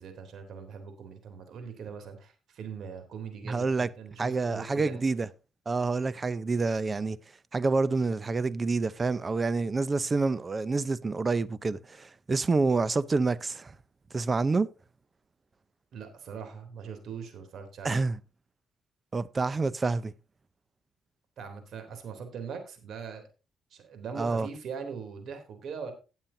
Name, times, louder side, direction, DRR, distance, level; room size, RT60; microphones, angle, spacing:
voice 1, 0.0-5.0 15.9-18.1 21.4-23.3 23.7-25.9, right 6 dB, 70° right, 3.3 m, -41 dB
voice 2, 3.4-3.9 4.2-5.3 5.7-7.2 7.5-13.7 14.1-14.7 17.8-18.2 19.1-20.1 24.2-24.5, right 3 dB, 30° right, 0.7 m, -27 dB
17.5 x 7.5 x 2.8 m
cardioid pair, 90°, 0 cm